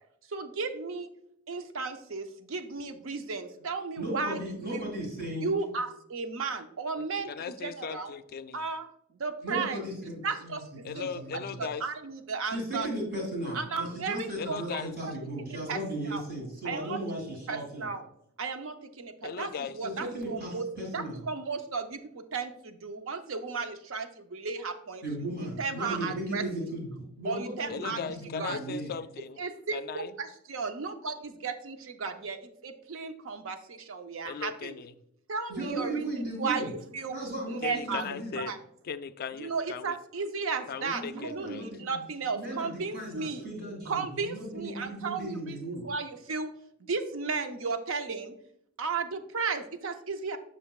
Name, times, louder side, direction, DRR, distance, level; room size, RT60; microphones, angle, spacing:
voice 1, 0.3-1.1 1.5-4.4 4.7-4.9 5.4-8.1 8.5-8.9 9.2-9.8 10.2-11.1 11.3-12.9 13.5-15.1 15.7-15.8 16.1-16.2 16.6-17.0 17.5-18.0 18.4-20.7 20.9-25.0 25.6-26.4 27.2-28.0 28.4-28.6 29.4-34.7 35.3-36.1 36.4-37.2 37.5-38.0 38.3-38.6 39.4-43.5 43.9-45.6 45.8-46.5 46.8-48.3 48.8-50.4, right 4 dB, 65° right, 8 dB, 0.6 m, -34 dB
voice 2, 4.0-5.5 9.4-11.6 12.5-17.9 19.8-21.2 25.0-28.9 35.5-36.7 37.1-37.6 37.9-38.4 40.9-42.1 42.3-45.9, right 1 dB, 50° right, -1 dB, 2.7 m, -36 dB
voice 3, 7.0-8.6 10.8-11.9 14.4-15.0 19.2-19.8 27.7-29.4 29.7-30.1 34.2-34.9 37.6-38.5 38.8-40.0 40.7-41.6, left 6 dB, 45° left, 13 dB, 0.3 m, -38 dB
7.8 x 6.3 x 2.3 m, 0.73 s
head